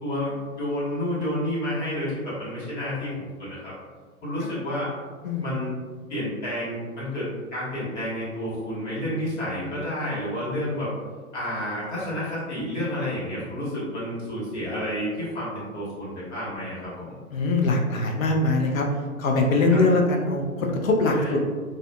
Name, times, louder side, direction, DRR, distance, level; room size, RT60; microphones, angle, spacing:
voice 1, 0.0-3.7 4.2-4.9 5.4-5.7 6.1-10.9 11.3-17.2 19.7-19.8 21.1-21.3, left 1 dB, 50° left, -8 dB, 1.4 m, -30 dB
voice 2, 5.2-5.6 17.3-18.9 19.2-21.4, left 2 dB, 65° left, 1 dB, 0.6 m, -22 dB
2.4 x 2.4 x 2.2 m, 1.5 s
figure-of-eight pair, 115°, 44 cm